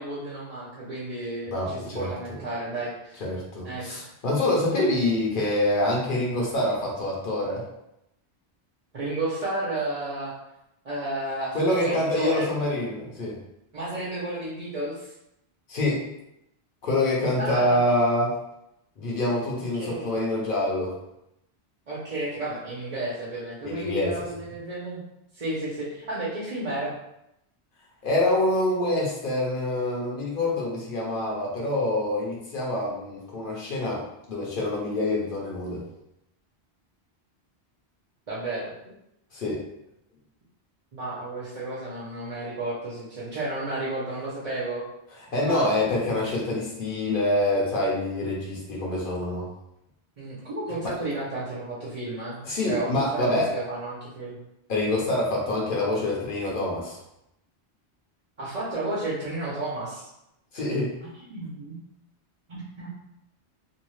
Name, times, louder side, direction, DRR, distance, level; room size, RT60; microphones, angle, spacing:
voice 1, 0.0-3.2 3.6-4.0 8.9-10.3 10.8-12.5 13.7-15.1 17.4-17.8 19.6-20.2 21.9-25.0 25.3-27.0 38.3-38.7 40.9-44.8 45.4-45.7 50.2-54.4 58.4-60.1 61.2-61.8 62.5-62.9, right 2 dB, 40° right, -8 dB, 0.7 m, -32 dB
voice 2, 1.5-2.1 3.2-7.6 11.5-13.4 15.7-16.0 16.8-18.3 19.0-21.0 23.6-24.1 28.0-34.0 34.3-35.8 39.3-39.6 45.3-49.5 50.8-50.9 52.4-53.5 54.7-57.0 60.5-61.0, left 1 dB, 55° left, -3 dB, 0.9 m, -26 dB
2.7 x 2.3 x 3.0 m, 0.83 s
omnidirectional pair, 1.1 m